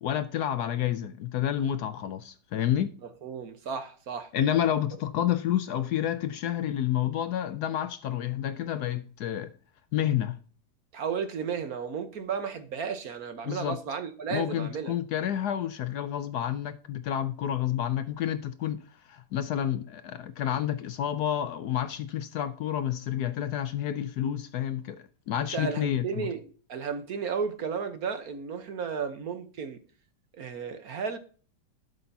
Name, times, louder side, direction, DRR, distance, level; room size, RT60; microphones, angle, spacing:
voice 1, 0.0-2.9 4.3-9.5 9.9-10.4 13.4-13.8 14.3-26.3, left 10 dB, 70° left, 1.0 m, -29 dB
voice 2, 3.2-4.3 10.9-14.9 25.4-26.4 26.7-29.8 30.3-31.2, right 6 dB, 55° right, 1.3 m, -33 dB
12.5 x 6.9 x 2.7 m
omnidirectional pair, 2.0 m